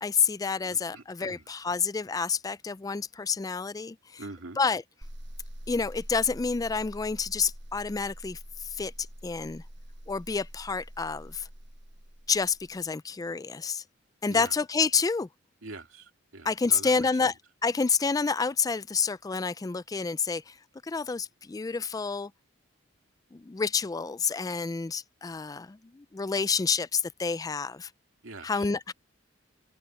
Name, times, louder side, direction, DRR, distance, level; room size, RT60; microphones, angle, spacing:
voice 1, 0.0-4.2 4.6-4.8 5.7-8.9 9.2-9.6 10.1-11.5 12.3-13.8 14.2-15.3 16.4-17.3 17.6-20.5 20.8-22.3 23.3-27.9 28.4-28.9, left 5 dB, 20° left, 0.3 m, -29 dB
voice 2, 0.6-1.4 4.2-4.6 14.3-14.5 15.6-17.3 28.2-28.7, right 3 dB, 85° right, 2.3 m, -44 dB
sound 1, 5.0-12.8, equal, 60° right, 6.7 m, -45 dB
open air
head